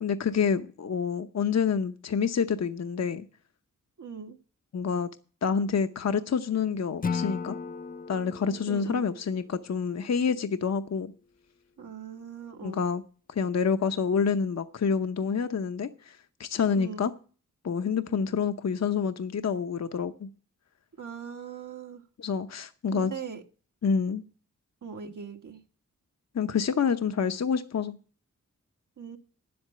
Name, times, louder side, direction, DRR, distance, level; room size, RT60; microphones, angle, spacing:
voice 1, 0.0-3.2 4.7-5.1 5.4-7.6 8.1-11.1 12.6-13.0 13.3-17.1 17.6-20.3 22.2-23.1 23.8-24.2 26.3-28.0, left 6 dB, 55° left, 0.8 m, -28 dB
voice 2, 4.0-4.4 8.7-9.1 11.8-12.8 16.7-17.1 21.0-22.0 22.9-23.4 24.8-25.6 29.0-29.2, right 6 dB, 75° right, 1.5 m, -40 dB
Acoustic guitar / Strum, 7.0-10.2, left 5 dB, 25° left, 0.7 m, -36 dB
9.7 x 7.9 x 7.7 m
cardioid pair, 55°, 31 cm